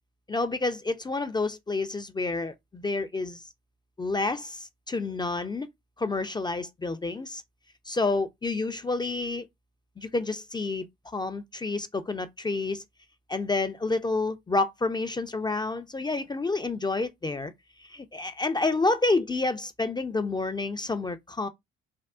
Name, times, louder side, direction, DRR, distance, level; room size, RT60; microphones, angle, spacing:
voice 1, 0.3-3.4 4.0-5.7 6.0-7.4 7.9-9.5 10.0-10.9 11.1-12.8 13.3-17.5 17.9-21.5, left 3 dB, 15° left, 0.3 m, -29 dB
3.5 x 2.0 x 2.3 m
hypercardioid pair, 55°, 29 cm